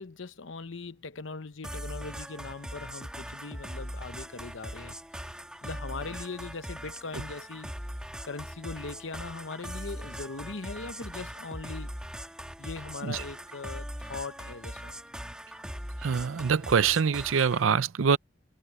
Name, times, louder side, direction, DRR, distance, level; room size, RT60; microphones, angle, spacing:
voice 1, 0.0-7.7 8.2-11.9 12.6-14.9, left 4 dB, 75° left, 0.9 m, -40 dB
sound 1, 1.6-17.6, equal, 5° right, 1.9 m, -40 dB
voice 2, 16.0-18.2, right 6 dB, 85° right, 0.5 m, -24 dB
head